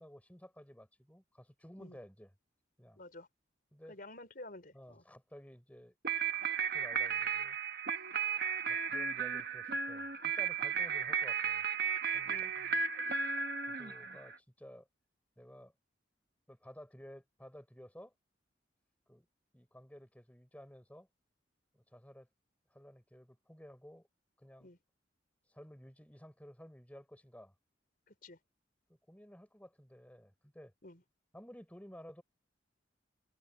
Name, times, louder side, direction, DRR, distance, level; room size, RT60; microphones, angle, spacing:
voice 1, 0.0-2.3 2.8-3.0 3.7-3.9 4.7-6.0 6.7-7.6 8.7-11.7 12.1-14.9 15.4-15.7 16.5-18.1 19.1-19.3 19.5-21.1 21.7-22.3 22.7-24.1 24.4-24.7 25.5-27.5 28.9-30.7 31.3-32.2, equal, 10° left, 5.0 m, -54 dB
voice 2, 3.0-3.3 3.9-5.0 10.7-10.8 12.2-12.5 24.6-24.8 28.1-28.4 30.8-31.0, left 2 dB, 50° left, 4.3 m, -51 dB
sound 1, 6.0-14.4, right 6 dB, 55° right, 1.3 m, -34 dB
head